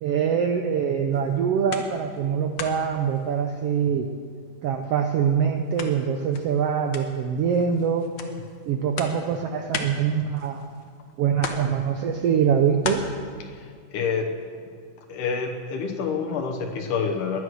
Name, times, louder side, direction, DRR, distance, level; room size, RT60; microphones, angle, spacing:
voice 1, 0.0-4.1 4.6-8.1 8.7-10.7 11.2-13.0, right 7 dB, 75° right, 5 dB, 1.4 m, -24 dB
sound 1, 1.1-2.3 2.5-4.1 4.5-11.0 11.4-13.0, left 5 dB, 60° left, 1.2 m, -37 dB
voice 2, 13.5-14.3 15.1-17.4, left 5 dB, 80° left, 3 dB, 2.6 m, -28 dB
19.0 x 11.0 x 6.3 m, 2.1 s
omnidirectional pair, 3.6 m